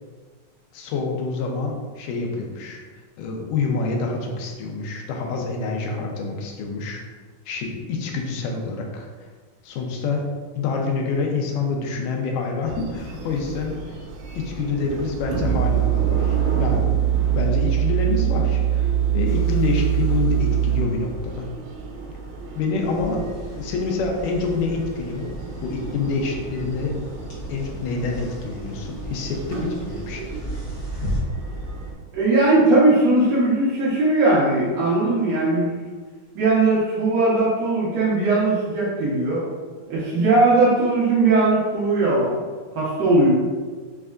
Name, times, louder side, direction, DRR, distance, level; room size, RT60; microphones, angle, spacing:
voice 1, 0.7-2.8 3.2-7.0 7.5-9.1 9.6-10.3 10.6-13.8 14.4-16.9 17.3-21.5 22.6-23.2 23.6-25.3 25.6-27.0 27.5-30.3, left 4 dB, 90° left, 1 dB, 2.2 m, -27 dB
sound 1, 12.7-31.9, right 3 dB, 90° right, 2.3 m, -34 dB
sound 2, 15.4-20.8, right 11 dB, 45° right, 1.0 m, -21 dB
sound 3, 22.8-31.2, equal, 65° left, 0.8 m, -35 dB
voice 2, 32.1-35.7 36.4-39.5 39.9-42.4 42.8-43.3, right 2 dB, 65° right, -7 dB, 1.8 m, -19 dB
5.2 x 3.4 x 2.4 m, 1.5 s
omnidirectional pair, 3.6 m